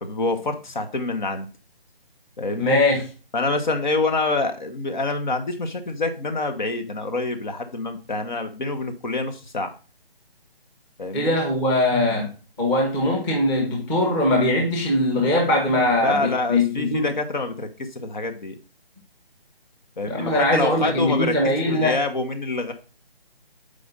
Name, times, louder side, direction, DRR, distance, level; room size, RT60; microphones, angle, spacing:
voice 1, 0.0-1.5 2.4-2.8 3.3-9.7 11.0-11.3 16.0-18.6 20.0-21.4 21.7-22.7, left 3 dB, 50° left, 1.3 m, -26 dB
voice 2, 2.6-3.0 11.1-12.3 12.6-17.1 20.1-22.0, left 1 dB, 10° left, 1.1 m, -21 dB
7.6 x 5.0 x 4.0 m
figure-of-eight pair, 160°, 30 cm